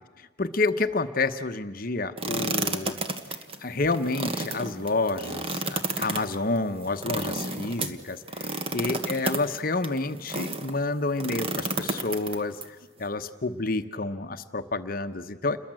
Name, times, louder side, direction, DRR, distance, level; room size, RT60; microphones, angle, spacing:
voice 1, 0.4-3.0 3.6-12.6 13.0-15.6, left 3 dB, 50° left, 8 dB, 1.0 m, -29 dB
sound 1, 2.2-10.7 11.2-12.6, right 3 dB, 30° right, 1.4 m, -31 dB
29.0 x 22.0 x 7.7 m, 1.2 s
head